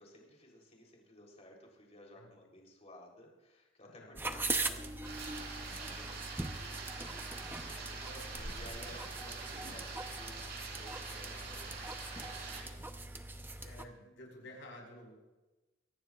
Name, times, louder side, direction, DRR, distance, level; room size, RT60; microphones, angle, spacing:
voice 1, 0.0-11.6 12.2-12.7, left 1 dB, 35° left, 0 dB, 3.6 m, -56 dB
voice 2, 3.8-4.2 5.7-6.0 8.0-8.6 11.2-12.3 13.6-15.2, left 1 dB, 75° left, 1 dB, 4.9 m, -54 dB
sound 1, 4.2-13.9, right 2 dB, 10° right, 0.8 m, -41 dB
sound 2, 5.0-12.6, right 4 dB, 55° right, 4.0 m, -45 dB
24.0 x 18.0 x 2.5 m, 1.1 s
head